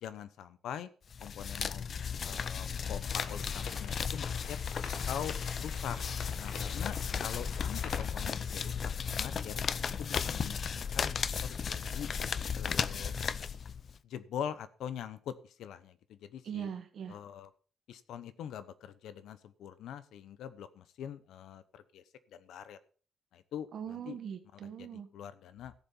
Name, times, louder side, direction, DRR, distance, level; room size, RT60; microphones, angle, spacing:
voice 1, 0.0-0.9 1.2-1.9 2.2-6.0 6.4-12.1 12.5-13.1 14.0-16.7 17.1-17.5 17.9-22.8 23.3-24.2 24.8-24.9 25.1-25.7, left 9 dB, 75° left, 14 dB, 1.0 m, -43 dB
sound 1, 1.1-14.0, left 6 dB, 35° left, 0.5 m, -35 dB
sound 2, 3.0-8.1, left 6 dB, 55° left, 1.5 m, -46 dB
sound 3, 5.9-13.6, right 3 dB, 10° right, 0.8 m, -53 dB
voice 2, 16.4-17.2 23.7-25.1, right 7 dB, 45° right, 7 dB, 1.8 m, -41 dB
14.5 x 7.1 x 5.5 m, 0.41 s
cardioid pair, 175°, 0 cm